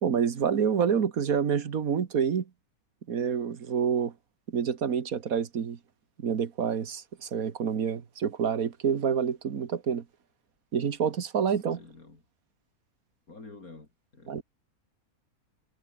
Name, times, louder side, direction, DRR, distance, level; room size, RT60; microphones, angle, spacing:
voice 1, 0.0-2.5 3.1-4.1 4.5-5.8 6.2-10.0 10.7-11.8 14.3-14.4, right 7 dB, 65° right, 1.9 m, -28 dB
voice 2, 11.5-12.2 13.3-14.4, left 3 dB, 65° left, 4.4 m, -49 dB
omnidirectional pair, 1.6 m